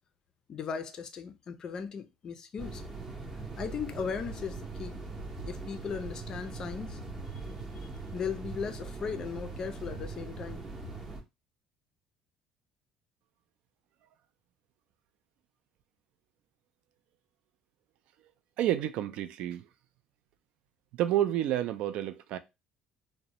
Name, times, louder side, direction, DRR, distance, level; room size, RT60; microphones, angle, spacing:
voice 1, 0.5-2.8 3.6-5.0 5.4-7.0 8.1-10.6, left 6 dB, 35° left, 0.4 m, -37 dB
sound 1, 2.6-11.2, right 3 dB, 20° right, 0.6 m, -41 dB
voice 2, 18.6-19.7 20.9-22.4, right 12 dB, 65° right, 0.3 m, -29 dB
2.6 x 2.1 x 2.9 m
cardioid pair, 150°, 2 cm